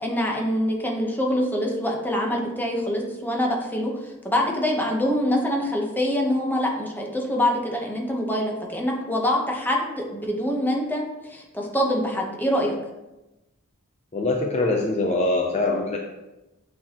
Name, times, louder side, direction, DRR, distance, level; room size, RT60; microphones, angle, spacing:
voice 1, 0.0-12.7, equal, 10° left, 0 dB, 0.9 m, -25 dB
voice 2, 14.1-16.0, left 2 dB, 30° left, 1 dB, 0.5 m, -23 dB
8.3 x 4.2 x 2.9 m, 1.0 s
head